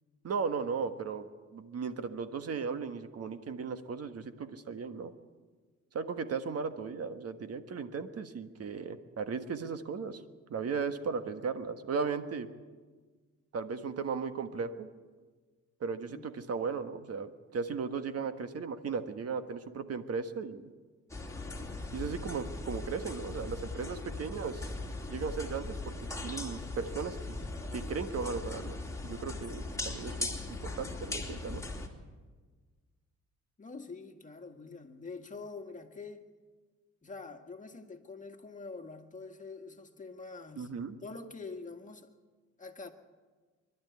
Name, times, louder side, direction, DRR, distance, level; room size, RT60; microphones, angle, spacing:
voice 1, 0.2-1.3 1.5-5.1 5.9-10.2 10.5-12.5 13.5-14.9 15.8-20.7 21.9-24.7 25.1-25.9 26.2-27.3 27.7-31.6 40.6-40.9, right 5 dB, 55° right, 10 dB, 1.5 m, -36 dB
voice 2, 16.1-16.4 33.6-36.3 37.0-40.7 41.0-42.1 42.6-42.9, left 4 dB, 25° left, 5 dB, 1.9 m, -45 dB
sound 1, 21.1-31.9, left 2 dB, 10° left, 2.9 m, -39 dB
25.0 x 12.0 x 9.6 m, 1.4 s
cardioid pair, 90°, 30 cm